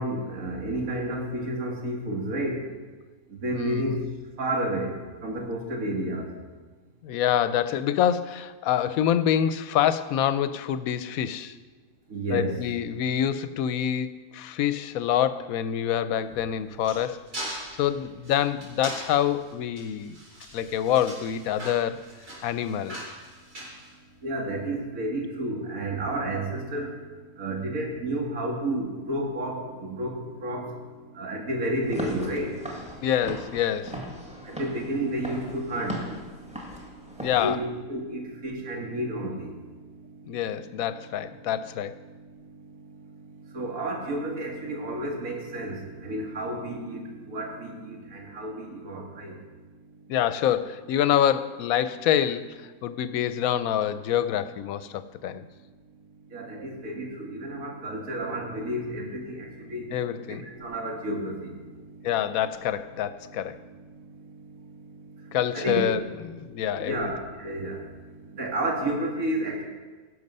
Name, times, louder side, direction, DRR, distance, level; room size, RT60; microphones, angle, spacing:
voice 1, 0.0-2.7 3.3-4.0 4.4-6.3 12.1-12.6 24.2-33.4 34.2-50.1 52.8-53.0 54.9-55.0 55.3-62.5 63.0-65.9 66.5-69.6, right 1 dB, 65° right, 0 dB, 2.1 m, -32 dB
voice 2, 3.5-4.0 7.0-11.6 12.3-20.2 20.5-22.1 22.4-23.0 33.0-34.0 37.2-37.6 40.3-41.9 50.1-55.4 59.9-60.4 62.0-63.6 65.3-67.1, left 10 dB, 70° left, 13 dB, 1.0 m, -26 dB
sound 1, 16.2-24.5, right 1 dB, 85° right, 4.4 m, -41 dB
Walk footsteps / Siren, 31.8-37.4, right 1 dB, 5° right, 1.7 m, -39 dB
17.0 x 6.6 x 5.4 m, 1.3 s
omnidirectional pair, 1.6 m